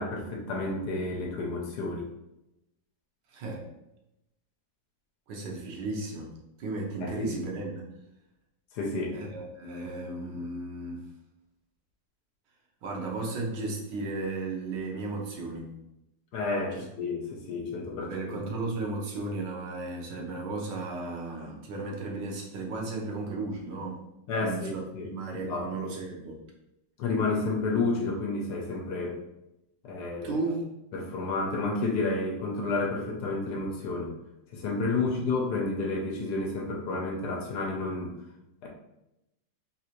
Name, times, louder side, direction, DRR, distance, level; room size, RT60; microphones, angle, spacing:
voice 1, 0.0-2.1 7.0-7.3 8.7-9.2 16.3-18.4 24.3-25.7 27.0-29.2 29.8-30.3 30.9-34.1 34.5-38.1 38.6-38.7, left 3 dB, 70° left, 0 dB, 1.2 m, -31 dB
voice 2, 3.3-3.6 5.3-6.3 6.6-7.8 9.1-11.1 12.8-15.7 16.7-16.8 18.0-24.0 24.4-26.4 30.2-30.6 35.0-35.1, right 3 dB, 85° right, -1 dB, 1.5 m, -35 dB
3.9 x 2.5 x 2.9 m, 0.89 s
omnidirectional pair, 1.9 m